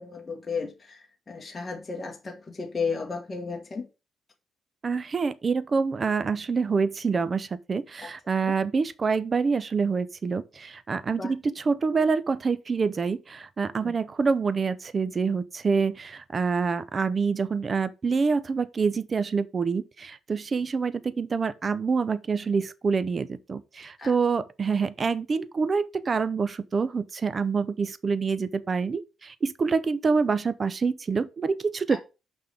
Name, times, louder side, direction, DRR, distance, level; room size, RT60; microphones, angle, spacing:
voice 1, 0.0-3.9 8.0-8.1 8.4-8.5 11.2-11.3 13.8-13.9 24.0-24.1 31.9-32.0, left 5 dB, 25° left, 1.4 m, -34 dB
voice 2, 4.8-32.0, right 5 dB, 35° right, 0.5 m, -26 dB
5.7 x 5.4 x 3.4 m
cardioid pair, 90°, 0 cm